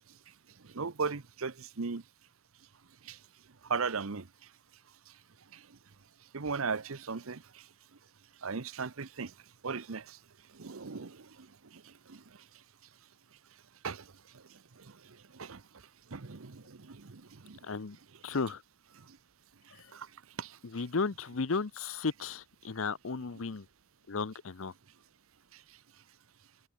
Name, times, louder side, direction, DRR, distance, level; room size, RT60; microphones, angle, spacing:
voice 1, 0.7-2.0 3.7-4.2 6.3-7.4 8.4-9.3 9.6-10.0 10.6-11.1 13.8-14.0 15.4-15.6 16.1-16.6 16.9-17.6 19.9-20.0 20.4-20.5, right 5 dB, 75° right, 0.9 m, -36 dB
voice 2, 17.6-18.0 18.2-18.6 20.7-23.6 24.1-24.7, left 4 dB, 70° left, 0.7 m, -34 dB
head